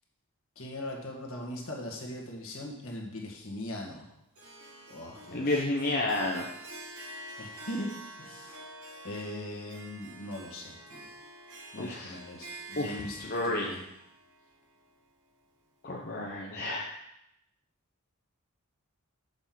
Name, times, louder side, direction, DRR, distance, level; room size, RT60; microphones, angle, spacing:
voice 1, 0.6-4.1 4.9-5.7 7.4-8.6 9.0-11.1 11.7-13.2 13.4-13.8, left 1 dB, 65° left, 0 dB, 1.7 m, -40 dB
Harp, 4.3-15.6, right 1 dB, 85° right, 3.1 m, -47 dB
voice 2, 5.3-6.5 11.7-12.2 12.8-12.9 13.2-13.7 15.8-17.0, left 2 dB, 45° left, -1 dB, 0.9 m, -31 dB
7.0 x 5.4 x 6.0 m, 0.82 s
head